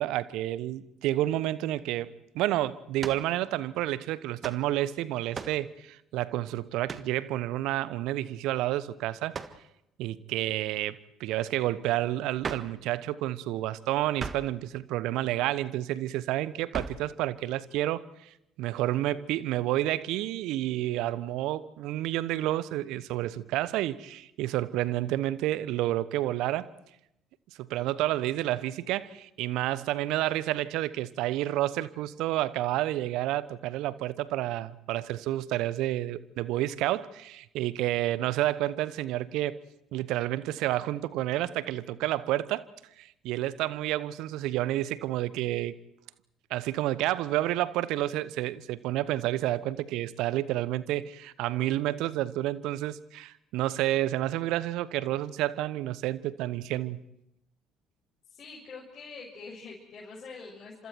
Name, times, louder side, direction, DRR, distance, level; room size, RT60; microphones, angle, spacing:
voice 1, 0.0-9.4 10.0-18.3 18.6-26.7 27.6-39.6 39.9-42.7 43.0-45.7 46.5-57.0, right 14 dB, 65° right, 1.0 m, -30 dB
sound 1, 3.0-3.3 4.4-4.6 5.3-5.6 6.9-7.1 9.3-9.6 12.4-12.8 14.2-14.6 16.7-17.1, right 5 dB, 40° right, 1.6 m, -37 dB
voice 2, 58.3-60.9, left 4 dB, 45° left, 6.5 m, -45 dB
29.5 x 26.5 x 4.6 m
hypercardioid pair, 55°, 0 cm